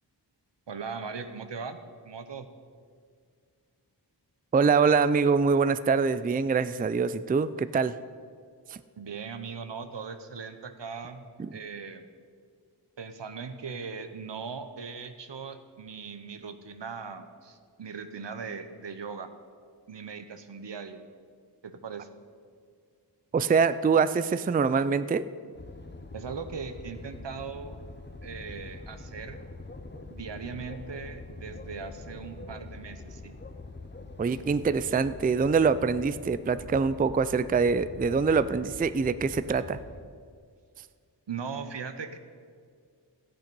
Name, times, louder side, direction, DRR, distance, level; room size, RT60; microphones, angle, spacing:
voice 1, 0.7-1.8 2.0-2.5 9.0-11.3 11.5-12.1 13.0-19.3 19.9-21.0 21.6-22.1 26.1-27.8 28.2-29.4 30.1-33.3 41.3-42.2, right 5 dB, 80° right, 9 dB, 0.9 m, -39 dB
voice 2, 4.5-8.0 8.7-8.8 11.4-11.5 23.3-25.3 34.2-39.8, right 5 dB, 20° right, 14 dB, 0.3 m, -24 dB
sound 1, 25.5-40.0, left 3 dB, 25° left, 0.8 m, -44 dB
13.0 x 8.8 x 5.3 m, 2.1 s
wide cardioid pair, 55°, 42 cm